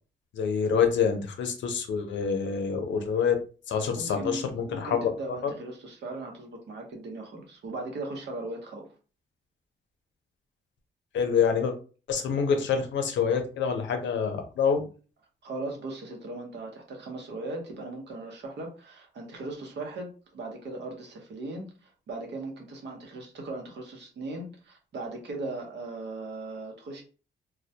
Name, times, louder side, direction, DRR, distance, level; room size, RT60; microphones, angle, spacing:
voice 1, 0.3-3.3 3.7-5.1 5.4-5.5 11.1-11.7 12.1-14.8, left 6 dB, 85° left, 5 dB, 0.6 m, -26 dB
voice 2, 3.9-8.9 15.4-27.0, right 2 dB, 75° right, 2 dB, 0.8 m, -38 dB
2.2 x 2.1 x 2.7 m, 0.37 s
cardioid pair, 100°, 19 cm